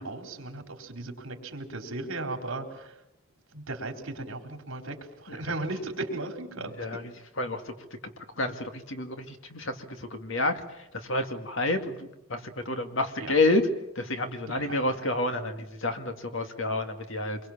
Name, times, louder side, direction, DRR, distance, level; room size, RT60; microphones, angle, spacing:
voice 1, 0.0-3.0 3.5-6.9 13.2-13.4 14.5-15.1, right 2 dB, 65° right, 4 dB, 3.7 m, -36 dB
voice 2, 8.9-9.2 9.5-9.7 10.2-10.5 11.1-11.9 12.3-12.4 12.7-13.6 14.0-17.4, left 2 dB, 60° left, 6 dB, 2.3 m, -28 dB
25.5 x 22.5 x 7.3 m, 0.88 s
head